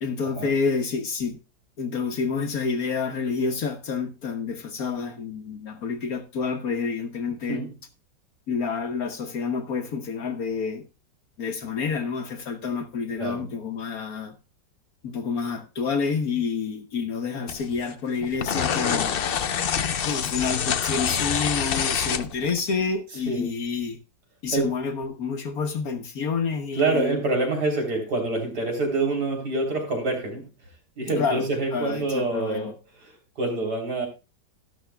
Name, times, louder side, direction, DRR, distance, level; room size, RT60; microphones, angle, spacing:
voice 1, 0.0-1.4 1.8-7.6 8.5-10.8 11.4-14.4 15.0-19.4 20.0-24.0 24.4-27.2 31.2-31.4 31.7-32.7, left 5 dB, 55° left, 1.4 m, -28 dB
sound 1, 17.5-17.9 18.2-22.7, left 8 dB, 80° left, 0.5 m, -26 dB
voice 2, 26.7-30.5 31.0-34.1, right 2 dB, 60° right, 3.9 m, -26 dB
12.5 x 12.0 x 2.2 m
omnidirectional pair, 1.9 m